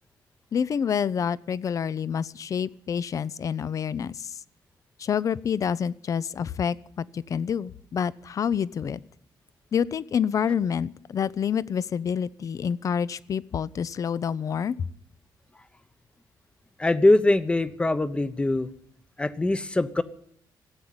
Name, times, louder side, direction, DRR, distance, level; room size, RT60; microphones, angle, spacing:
voice 1, 0.5-4.3 5.0-9.0 9.7-14.8, left 7 dB, 40° left, 19 dB, 0.5 m, -28 dB
voice 2, 16.8-18.7 19.2-20.0, left 2 dB, 15° left, 13 dB, 0.8 m, -22 dB
16.5 x 8.8 x 9.6 m, 0.64 s
cardioid pair, 145°, 8 cm